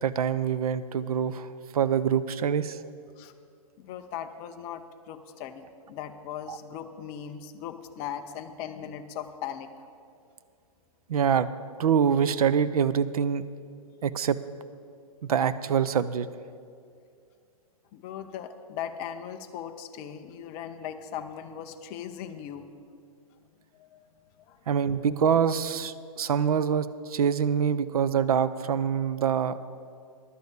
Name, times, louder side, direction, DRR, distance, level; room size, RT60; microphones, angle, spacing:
voice 1, 0.0-1.5 1.7-2.8 6.5-6.6 11.1-11.5 11.8-13.4 14.0-14.4 15.2-16.3 24.7-29.6, right 7 dB, 75° right, 14 dB, 0.6 m, -25 dB
voice 2, 3.8-9.7 17.9-22.7 23.8-24.0 24.5-24.6, left 9 dB, 15° left, 6 dB, 0.3 m, -39 dB
11.0 x 6.5 x 8.3 m, 2.3 s
hypercardioid pair, 160°, 19 cm